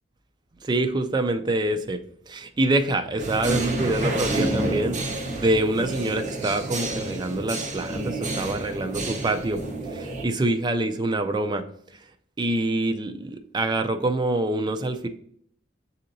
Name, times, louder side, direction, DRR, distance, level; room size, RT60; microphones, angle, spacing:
voice 1, 0.6-2.0 2.3-5.0 5.4-9.6 9.9-11.6 12.4-15.1, right 2 dB, 25° right, 7 dB, 0.3 m, -25 dB
sound 1, 3.2-10.2, right 2 dB, 40° right, 0.8 m, -29 dB
7.3 x 2.8 x 2.6 m, 0.65 s
head